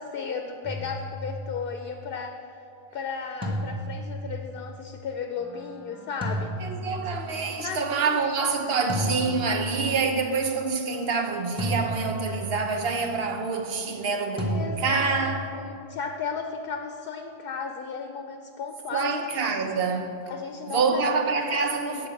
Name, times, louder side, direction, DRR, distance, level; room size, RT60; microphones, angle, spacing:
voice 1, 0.0-2.4 2.9-6.5 7.6-8.0 14.5-19.1 20.3-21.0, left 5 dB, 65° left, 0.7 m, -34 dB
sound 1, 0.6-1.6 3.4-4.6 6.2-7.4 8.9-10.0 11.6-12.7 14.4-15.3, equal, 5° right, 1.1 m, -32 dB
Wind instrument woodwind instrument, 5.3-13.6, left 1 dB, 20° left, 0.5 m, -48 dB
voice 2, 6.6-15.5 18.9-20.2 20.7-22.1, right 4 dB, 70° right, 1.0 m, -26 dB
9.3 x 4.6 x 7.2 m
omnidirectional pair, 1.1 m